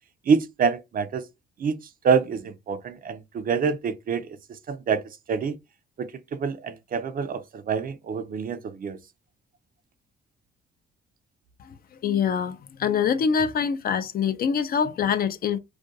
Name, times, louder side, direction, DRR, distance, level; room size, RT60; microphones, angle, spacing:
voice 1, 0.3-1.3 1.6-5.0 5.3-5.6 6.0-9.0, right 6 dB, 45° right, 0.4 m, -26 dB
voice 2, 12.0-15.6, left 7 dB, 50° left, 0.4 m, -24 dB
2.4 x 2.2 x 2.6 m
cardioid pair, 90°, 20 cm